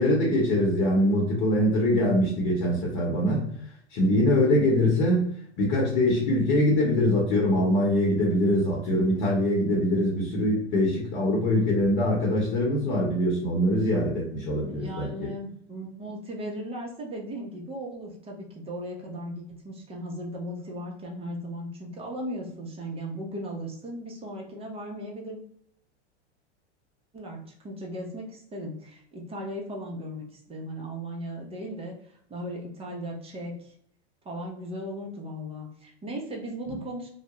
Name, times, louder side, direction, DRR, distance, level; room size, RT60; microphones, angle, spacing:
voice 1, 0.0-3.5 3.9-5.3 5.6-15.3, left 1 dB, 45° left, -2 dB, 0.9 m, -23 dB
voice 2, 14.6-25.4 27.1-33.7 34.2-37.1, equal, 15° right, 0 dB, 0.7 m, -37 dB
2.3 x 2.2 x 2.9 m, 0.67 s
hypercardioid pair, 100°, 34 cm